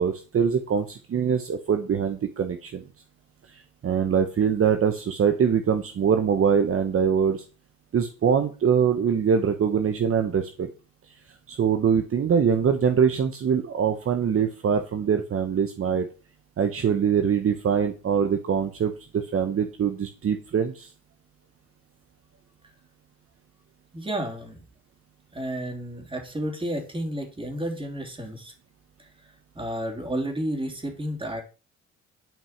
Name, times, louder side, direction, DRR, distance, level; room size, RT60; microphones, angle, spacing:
voice 1, 0.0-2.8 3.5-7.4 7.9-10.7 11.5-16.1 16.6-20.9, right 7 dB, 45° right, 7 dB, 1.1 m, -23 dB
voice 2, 23.9-24.6 25.3-28.5 29.5-31.4, right 1 dB, 15° right, 4 dB, 3.2 m, -31 dB
11.0 x 5.5 x 5.9 m, 0.35 s
cardioid pair, 90°, 30 cm